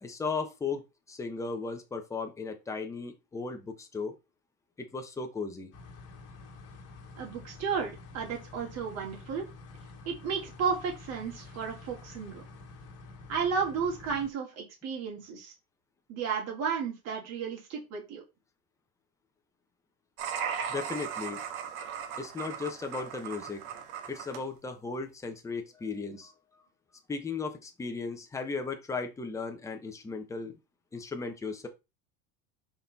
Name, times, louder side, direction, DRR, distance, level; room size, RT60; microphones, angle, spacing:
voice 1, 0.0-4.1 4.8-5.7 20.7-21.4 22.2-23.6 24.1-26.3 27.1-30.6 30.9-31.7, left 4 dB, 5° left, 4 dB, 0.8 m, -36 dB
sound 1, 5.7-14.3, left 3 dB, 35° left, 2.1 m, -49 dB
voice 2, 7.2-9.5 10.1-12.4 13.3-15.5 16.1-18.2, right 6 dB, 35° right, 0 dB, 2.5 m, -33 dB
sound 2, 20.2-24.4, right 7 dB, 80° right, 1.5 m, -37 dB
5.7 x 4.4 x 4.0 m, 0.25 s
supercardioid pair, 160°, 42 cm